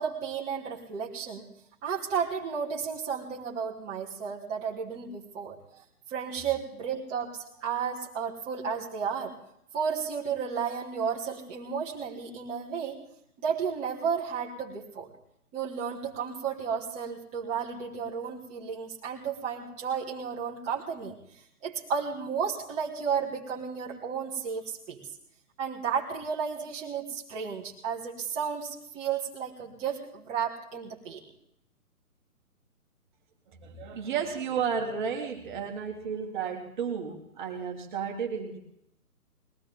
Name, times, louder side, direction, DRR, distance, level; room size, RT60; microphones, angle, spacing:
voice 1, 0.0-1.5 1.8-5.6 6.1-7.3 7.6-9.3 9.7-13.0 13.4-15.1 15.5-21.1 21.6-25.0 25.6-31.2, right 6 dB, 15° right, -4 dB, 2.1 m, -33 dB
voice 2, 33.6-38.6, right 7 dB, 30° right, 1 dB, 2.2 m, -32 dB
21.0 x 17.0 x 3.5 m, 0.76 s
figure-of-eight pair, 140°, 45 cm